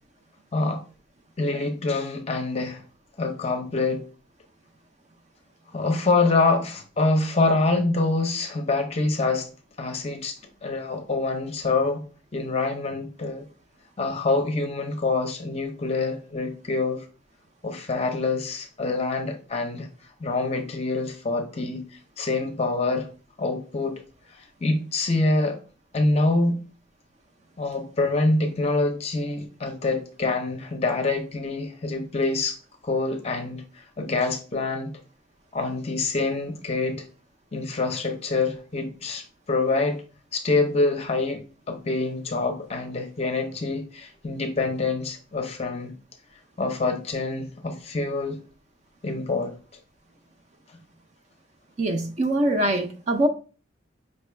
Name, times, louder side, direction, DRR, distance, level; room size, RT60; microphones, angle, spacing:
voice 1, 0.5-0.8 1.4-2.8 3.2-4.0 5.7-9.5 9.8-12.0 12.3-13.5 14.0-17.0 17.6-19.9 20.2-21.8 22.2-23.1 23.4-24.0 24.6-25.6 25.9-26.6 27.6-32.6 32.8-34.9 35.5-37.0 37.5-40.0 40.3-45.9 46.6-48.4 49.0-49.6, left 3 dB, 35° left, 0.6 m, -26 dB
voice 2, 51.8-53.3, right 1 dB, 40° right, 0.5 m, -23 dB
5.2 x 2.3 x 3.2 m
head